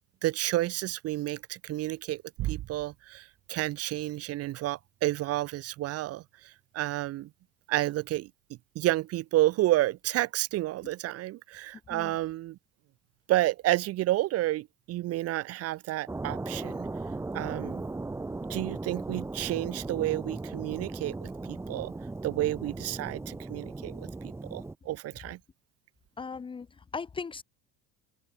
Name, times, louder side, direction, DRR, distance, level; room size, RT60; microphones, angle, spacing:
voice 1, 0.2-7.3 7.7-8.3 8.7-12.6 13.3-16.9 17.3-17.8 18.5-21.9 22.2-25.4, right 16 dB, 45° right, 1.6 m, -30 dB
sound 1, 16.1-24.8, right 3 dB, 10° right, 2.0 m, -37 dB
voice 2, 26.2-27.4, left 5 dB, 15° left, 1.2 m, -38 dB
cardioid pair, 175°, 34 cm